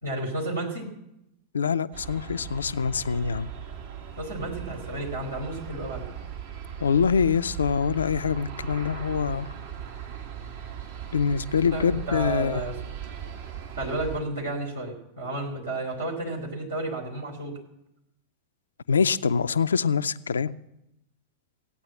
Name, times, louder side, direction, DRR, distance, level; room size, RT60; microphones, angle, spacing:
voice 1, 0.0-0.9 4.2-6.1 11.7-12.8 13.8-17.6, right 2 dB, 75° right, 3.6 m, -32 dB
voice 2, 1.5-3.5 6.8-9.5 11.1-12.6 18.9-20.5, left 6 dB, 70° left, 0.4 m, -24 dB
Aircraft, 1.9-14.2, right 8 dB, 55° right, 1.4 m, -38 dB
16.0 x 9.2 x 7.3 m
figure-of-eight pair, 90°, 0 cm